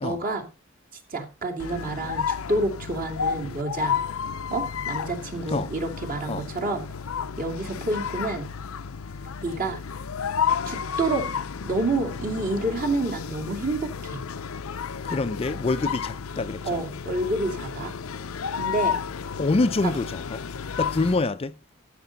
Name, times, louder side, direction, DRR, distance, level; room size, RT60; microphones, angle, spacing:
voice 1, 0.0-0.5 1.1-4.0 4.5-6.8 7.4-8.5 9.4-9.8 10.6-11.3 11.6-14.2 16.6-17.9 18.6-19.0 19.8-19.9, right 2 dB, 45° right, 2.6 m, -28 dB
sound 1, 1.6-21.3, left 7 dB, 85° left, 0.6 m, -32 dB
voice 2, 15.0-16.8 19.4-20.4 20.8-21.6, left 3 dB, 30° left, 0.4 m, -26 dB
13.5 x 6.7 x 4.0 m
head